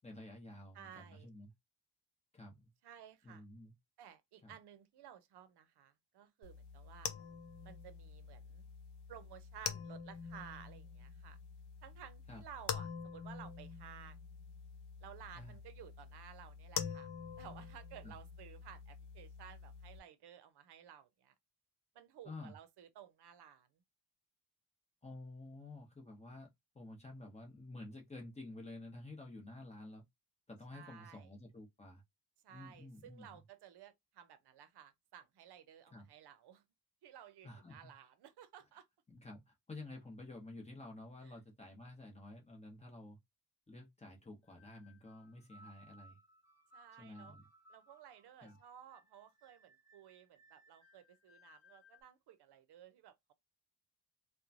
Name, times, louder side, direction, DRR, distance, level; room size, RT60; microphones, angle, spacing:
voice 1, 0.0-1.5 2.3-2.6 3.2-3.7 4.4-4.5 12.3-12.4 15.3-15.6 18.0-18.2 22.2-22.6 25.0-26.5 26.7-30.0 30.5-32.0 32.5-33.4 35.9-36.1 37.4-37.9 39.1-43.2 43.7-46.2 47.0-47.5 48.4-48.6, left 2 dB, 15° left, 0.9 m, -51 dB
voice 2, 0.7-1.3 2.8-3.4 4.0-7.1 7.6-8.7 9.1-11.4 11.8-14.2 15.0-17.1 17.4-21.3 21.9-23.7 30.7-31.3 32.4-36.6 37.0-38.9 41.2-41.4 46.7-47.4 47.7-53.3, right 9 dB, 70° right, 0.6 m, -56 dB
sound 1, 6.4-20.0, left 7 dB, 70° left, 0.6 m, -46 dB
sound 2, 44.4-52.0, equal, 35° left, 1.1 m, -64 dB
3.0 x 2.2 x 2.5 m
cardioid pair, 130°, 42 cm